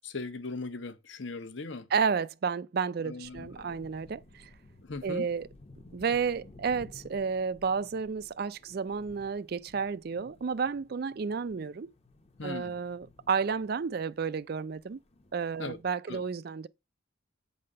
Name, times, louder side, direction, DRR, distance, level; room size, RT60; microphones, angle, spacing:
voice 1, 0.0-1.9 3.0-3.7 4.8-5.3 12.4-12.7 15.6-15.8 16.1-16.2, left 3 dB, 65° left, 0.9 m, -39 dB
voice 2, 1.9-4.5 5.0-5.5 5.9-11.9 12.4-15.0 15.3-16.7, right 5 dB, 50° right, 0.4 m, -31 dB
sound 1, 3.2-15.8, left 2 dB, 30° left, 0.8 m, -55 dB
8.5 x 4.1 x 6.5 m
head